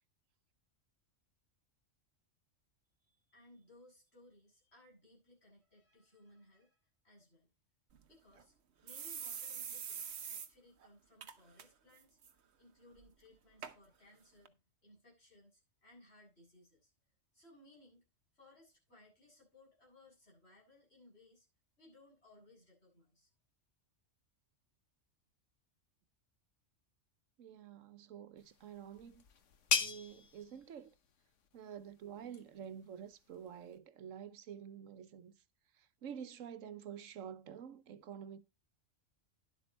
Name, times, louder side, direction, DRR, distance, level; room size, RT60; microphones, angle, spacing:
voice 1, 3.0-7.5 8.1-8.5 8.8-12.2 12.6-16.9 17.3-18.0 18.3-21.5 21.8-23.3, left 1 dB, 55° left, 8.0 m, -63 dB
sound 1, 7.9-8.0 8.4-8.5 8.9-10.5 10.8-10.9 11.2-11.6 12.0-12.3 13.0-13.1 13.6-13.7 14.5-14.6, right 7 dB, 60° right, 1.2 m, -44 dB
voice 2, 27.4-29.2 29.7-30.9 31.5-35.4 35.7-38.4, right 8 dB, 90° right, 1.2 m, -49 dB
sound 2, 28.4-33.8, left 5 dB, 75° left, 1.4 m, -41 dB
11.5 x 7.7 x 4.1 m
omnidirectional pair, 1.3 m